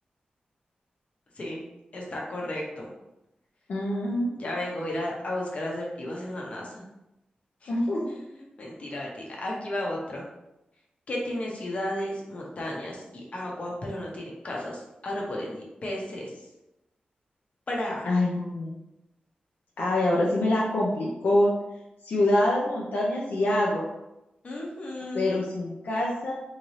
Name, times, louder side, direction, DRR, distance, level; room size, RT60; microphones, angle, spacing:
voice 1, 1.9-2.9 4.4-6.8 7.6-7.7 8.1-8.2 8.6-9.1 9.4-10.2 11.1-16.3 17.7-18.1 24.4-25.4, left 1 dB, 45° left, -3 dB, 0.8 m, -33 dB
voice 2, 3.7-4.4 7.7-8.0 18.0-18.8 19.8-21.5 22.0-23.9 25.1-26.3, left 1 dB, 85° left, -5 dB, 0.6 m, -25 dB
3.7 x 2.8 x 3.1 m, 0.93 s
wide cardioid pair, 150°, 3 cm